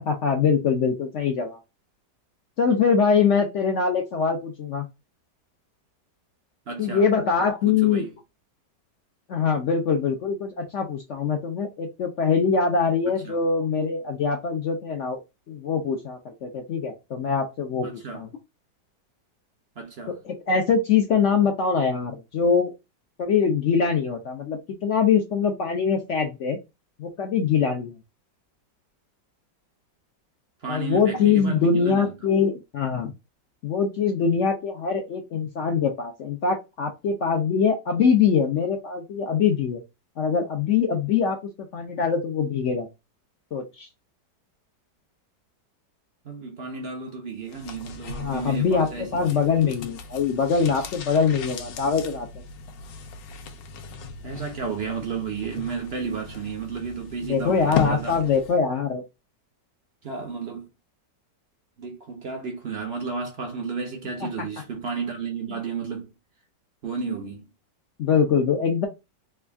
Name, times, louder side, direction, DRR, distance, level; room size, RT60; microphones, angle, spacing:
voice 1, 0.0-1.6 2.6-4.9 6.8-8.0 9.3-15.2 15.5-18.3 20.1-22.7 23.2-26.6 27.0-28.0 30.7-33.1 33.6-39.8 40.2-41.4 41.7-42.9 43.5-43.9 48.2-52.3 57.2-59.0 64.2-64.3 68.0-68.9, left 6 dB, 70° left, 0.7 m, -23 dB
voice 2, 6.7-7.1 7.7-8.1 13.1-13.4 17.8-18.2 19.8-20.2 30.6-32.1 46.2-49.4 54.2-58.2 60.0-60.7 61.8-66.1 66.8-67.5, right 5 dB, 60° right, 0.6 m, -33 dB
sound 1, 47.4-58.7 58.9-59.0, left 5 dB, 85° left, 1.3 m, -37 dB
3.4 x 2.3 x 3.3 m
omnidirectional pair, 1.9 m